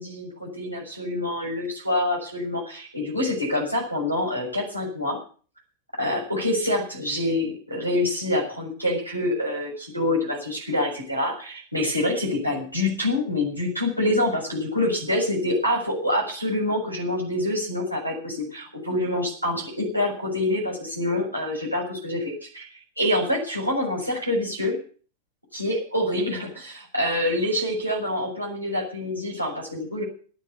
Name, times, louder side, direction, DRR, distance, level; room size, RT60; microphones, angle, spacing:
voice 1, 0.0-5.2 6.0-22.7 23.0-24.8 25.5-30.0, left 1 dB, 90° right, -2 dB, 7.2 m, -26 dB
13.5 x 9.5 x 8.3 m, 0.42 s
figure-of-eight pair, 90°, 0 cm